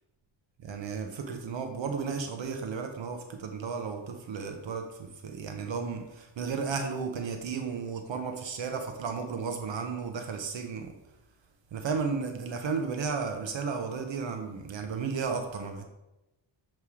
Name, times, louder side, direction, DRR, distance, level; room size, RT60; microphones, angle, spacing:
voice 1, 0.6-10.9 11.7-15.8, right 5 dB, 65° right, 5 dB, 0.7 m, -34 dB
7.0 x 3.1 x 4.8 m, 0.96 s
wide cardioid pair, 170°, 50 cm